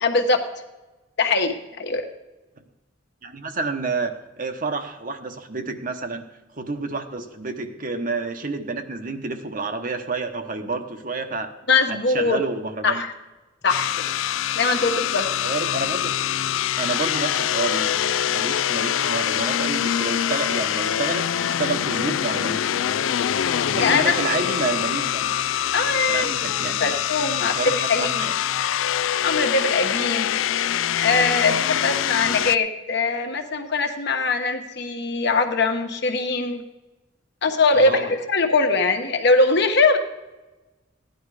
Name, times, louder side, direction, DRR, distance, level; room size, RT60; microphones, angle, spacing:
voice 1, 0.0-0.4 1.2-2.0 11.7-12.4 12.8-13.1 13.6-13.9 14.5-15.3 23.8-24.1 25.7-28.3 29.2-30.4 31.0-36.6 37.4-40.0, left 3 dB, 60° left, 4 dB, 1.3 m, -22 dB
voice 2, 3.2-4.1 4.4-6.3 6.6-11.5 11.9-13.0 15.4-16.1 16.8-22.6 23.7-25.3 26.1-27.0 27.4-28.3 37.7-38.1, right 3 dB, 45° right, 6 dB, 1.1 m, -29 dB
sound 1, 13.7-32.6, left 10 dB, 85° left, 0.4 m, -24 dB
15.5 x 10.5 x 4.9 m, 1.1 s
head